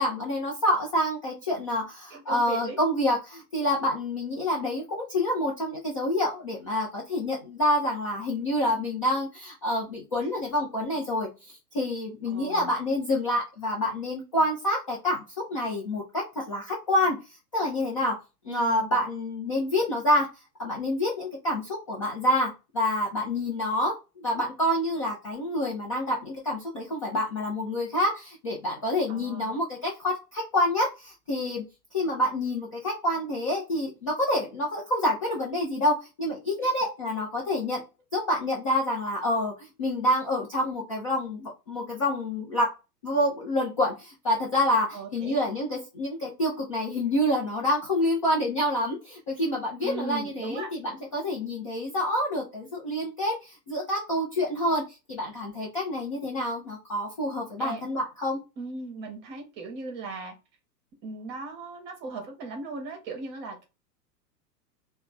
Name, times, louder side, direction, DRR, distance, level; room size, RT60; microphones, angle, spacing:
voice 1, 0.0-15.2 15.5-17.2 17.5-18.1 18.4-20.3 20.6-31.6 31.9-37.8 38.1-42.7 43.0-54.8 55.1-58.4, left 1 dB, 25° left, -3 dB, 0.4 m, -27 dB
voice 2, 2.1-2.8 10.2-10.3 12.3-12.7 18.5-19.1 29.1-29.6 36.6-36.7 44.9-45.4 49.8-50.7 57.6-57.8 58.6-60.3 61.0-63.7, right 4 dB, 20° right, 3 dB, 0.8 m, -38 dB
3.1 x 2.2 x 4.0 m, 0.28 s
figure-of-eight pair, 105°, 50 cm